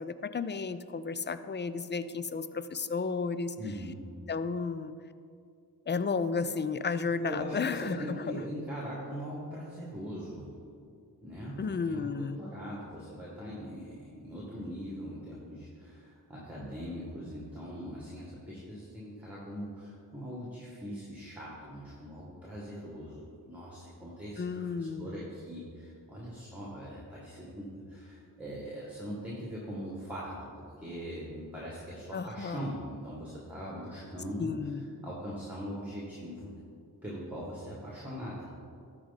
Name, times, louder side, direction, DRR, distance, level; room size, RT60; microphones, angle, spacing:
voice 1, 0.0-3.6 4.3-4.9 5.9-8.4 11.6-12.4 24.4-25.2 32.1-32.7 34.4-34.8, left 5 dB, 30° left, 13 dB, 0.4 m, -33 dB
voice 2, 3.6-4.1 7.2-10.6 11.2-34.7 35.0-36.5 37.0-38.5, equal, 5° right, -6 dB, 1.9 m, -41 dB
12.5 x 4.7 x 4.1 m, 2.4 s
cardioid pair, 50°, 41 cm